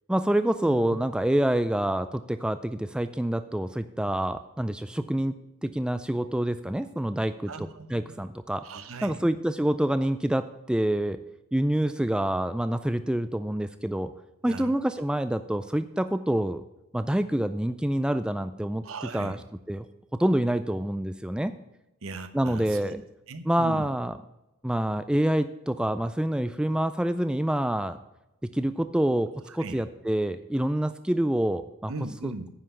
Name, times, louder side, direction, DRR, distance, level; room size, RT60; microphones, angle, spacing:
voice 1, 0.1-5.3 5.6-8.6 9.0-11.2 11.5-14.1 14.4-16.6 16.9-18.8 19.1-19.4 19.7-19.9 20.1-21.5 22.3-23.0 23.4-24.2 24.6-28.0 28.5-31.9 32.2-32.3, right 1 dB, 5° right, 11 dB, 0.3 m, -27 dB
voice 2, 7.5-8.0 8.6-9.2 14.4-14.7 18.8-19.3 22.0-22.9 23.3-23.9 29.5-29.8 31.9-32.5, right 3 dB, 65° right, 10 dB, 1.0 m, -38 dB
10.0 x 5.6 x 7.9 m, 0.93 s
head